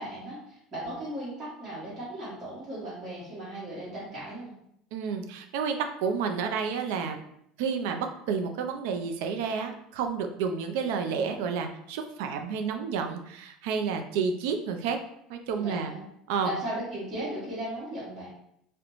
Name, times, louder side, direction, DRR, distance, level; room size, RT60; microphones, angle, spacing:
voice 1, 0.0-4.5 15.5-16.0 16.4-18.3, right 1 dB, 20° right, -10 dB, 1.0 m, -36 dB
voice 2, 4.9-7.2 7.6-15.0 15.3-15.9 16.3-16.5, right 6 dB, 80° right, 6 dB, 0.3 m, -30 dB
2.4 x 2.0 x 2.9 m, 0.73 s
cardioid pair, 170°, 0 cm